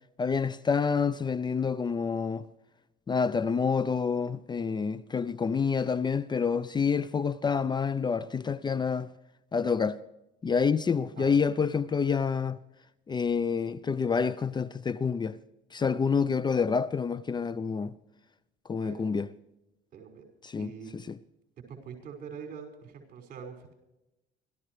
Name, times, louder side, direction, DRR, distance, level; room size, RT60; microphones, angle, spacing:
voice 1, 0.2-2.4 3.1-9.1 9.5-10.0 10.4-12.6 13.1-15.4 15.7-17.9 18.7-19.3 20.4-21.2, left 5 dB, 25° left, 0.6 m, -28 dB
voice 2, 19.9-20.3 20.6-20.9 21.7-23.7, right 6 dB, 55° right, 5.7 m, -44 dB
29.0 x 13.5 x 3.2 m
cardioid pair, 110°, 17 cm